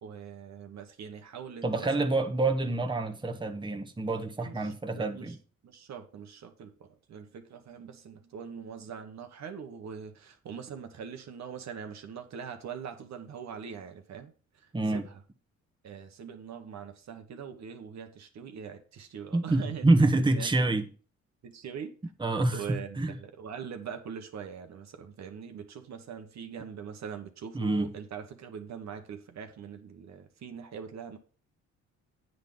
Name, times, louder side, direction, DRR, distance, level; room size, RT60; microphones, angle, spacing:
voice 1, 0.0-2.1 4.4-5.3 5.6-15.2 15.8-20.7 21.4-21.9 22.5-31.2, right 7 dB, 65° right, 1.4 m, -42 dB
voice 2, 1.6-5.3 14.7-15.0 19.3-20.9 22.2-23.1 27.5-27.9, right 2 dB, 15° right, 1.3 m, -27 dB
9.4 x 4.0 x 7.0 m
cardioid pair, 90°, 30 cm